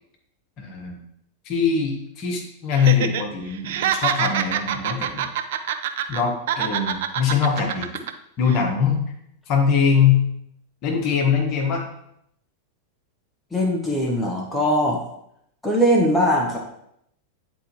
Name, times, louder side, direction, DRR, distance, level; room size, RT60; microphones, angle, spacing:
voice 1, 0.6-1.0 1.4-5.3 6.1-7.9 8.4-9.0 9.5-10.2 10.8-11.8, left 6 dB, 40° left, 1 dB, 1.4 m, -22 dB
Laughter, 2.7-3.2 3.5-6.2 6.5-8.1 8.5-8.6, right 10 dB, 55° right, 0.4 m, -25 dB
voice 2, 13.5-15.0 15.6-16.6, equal, 5° left, -2 dB, 1.1 m, -20 dB
9.2 x 4.3 x 3.1 m, 0.75 s
figure-of-eight pair, 90°, 0 cm